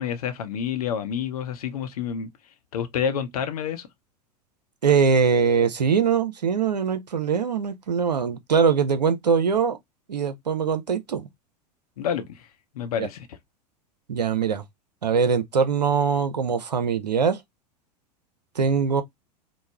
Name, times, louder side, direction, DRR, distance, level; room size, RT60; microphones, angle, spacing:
voice 1, 0.0-2.3 2.7-3.9 12.0-12.5 12.7-13.3, left 8 dB, 65° left, 0.7 m, -28 dB
voice 2, 4.8-9.8 10.1-11.3 13.0-13.1 14.1-14.6 15.0-17.4 18.6-19.0, right 6 dB, 85° right, 0.5 m, -22 dB
3.1 x 2.0 x 3.3 m
figure-of-eight pair, 85°, 21 cm